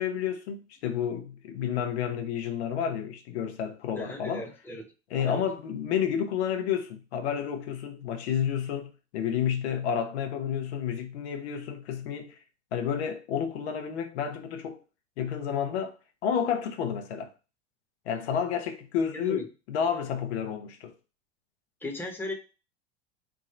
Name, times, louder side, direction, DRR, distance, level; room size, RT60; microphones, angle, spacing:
voice 1, 0.0-4.5 5.1-12.4 12.7-14.8 15.2-15.9 16.2-17.3 18.0-20.9, left 8 dB, 75° left, 1.0 m, -30 dB
voice 2, 3.9-4.9 5.3-5.4 19.1-19.4 21.8-22.3, left 1 dB, 5° left, 1.0 m, -36 dB
3.8 x 2.6 x 4.2 m
supercardioid pair, 105°, 33 cm